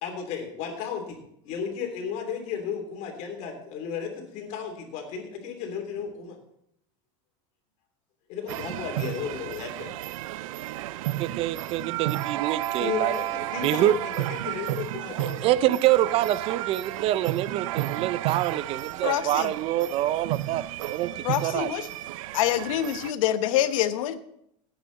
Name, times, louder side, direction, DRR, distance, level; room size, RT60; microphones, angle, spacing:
voice 1, 0.0-1.2 1.4-6.4 8.3-9.9 12.8-15.6, left 7 dB, 45° left, 2 dB, 3.3 m, -34 dB
sound 1, 8.5-23.1, right 15 dB, 90° right, 0.5 m, -32 dB
voice 2, 11.2-13.1 13.6-14.0 15.4-21.1 21.4-21.7, right 13 dB, 35° right, 16 dB, 0.5 m, -26 dB
voice 3, 19.0-19.5 21.2-21.9 22.3-24.2, left 12 dB, 85° left, 11 dB, 1.0 m, -26 dB
17.0 x 8.9 x 4.1 m, 0.75 s
supercardioid pair, 160°, 17 cm